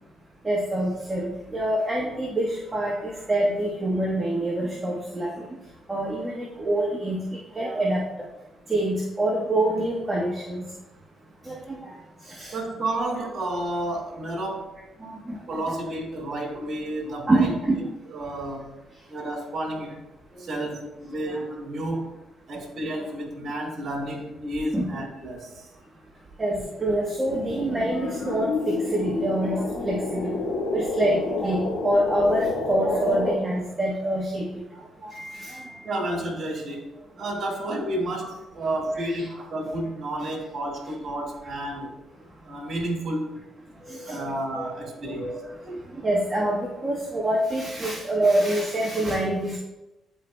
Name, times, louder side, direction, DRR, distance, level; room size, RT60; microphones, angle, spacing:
voice 1, 0.4-5.5 5.9-7.2 7.5-8.0 8.7-10.6 11.4-11.9 12.3-12.6 15.0-15.7 17.3-17.8 21.3-21.4 23.0-23.1 24.7-24.9 26.4-30.3 30.7-34.4 35.0-35.8 39.0-39.3 43.8-45.8 46.0-49.6, right 1 dB, 20° right, -4 dB, 1.3 m, -26 dB
voice 2, 12.5-14.7 15.5-17.6 18.1-18.7 19.1-20.0 20.4-22.2 22.5-25.7 35.8-36.9 37.2-41.9 42.5-43.3 44.1-45.3, right 1 dB, 50° right, 0 dB, 1.8 m, -31 dB
sound 1, 27.3-33.3, left 3 dB, 90° left, 1.4 m, -29 dB
11.5 x 4.5 x 2.2 m, 0.99 s
cardioid pair, 90°, 0 cm